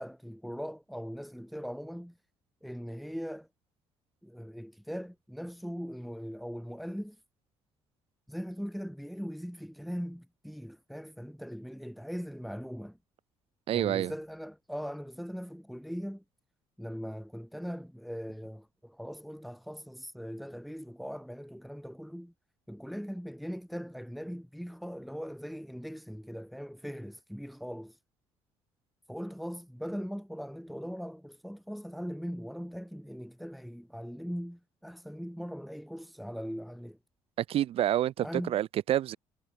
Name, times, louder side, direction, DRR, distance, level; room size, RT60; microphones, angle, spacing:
voice 1, 0.0-2.2 2.6-3.5 4.2-7.2 8.3-13.0 13.7-16.2 16.8-22.3 22.7-28.0 29.1-37.0 38.2-38.6, equal, ahead, 2.8 m, -40 dB
voice 2, 13.7-14.1 37.4-39.2, right 12 dB, 65° right, 1.4 m, -28 dB
supercardioid pair, 75°, 11 cm